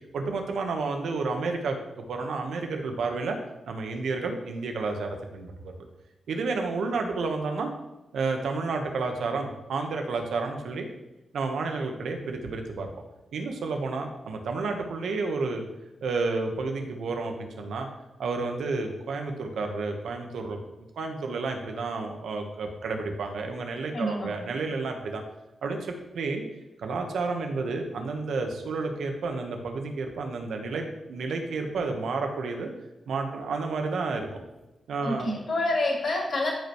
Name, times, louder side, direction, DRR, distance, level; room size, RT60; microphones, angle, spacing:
voice 1, 0.1-3.4 3.7-5.7 6.3-7.7 8.1-10.9 11.3-12.9 13.3-15.6 16.0-17.9 18.2-20.6 21.0-25.2 25.6-26.4 26.8-32.7 33.1-34.3 34.9-35.3, right 3 dB, 85° right, 4 dB, 1.2 m, -31 dB
voice 2, 23.9-24.3 35.0-36.5, left 1 dB, 55° left, -3 dB, 3.4 m, -27 dB
13.5 x 5.4 x 3.2 m, 1.0 s
cardioid pair, 100°, 0 cm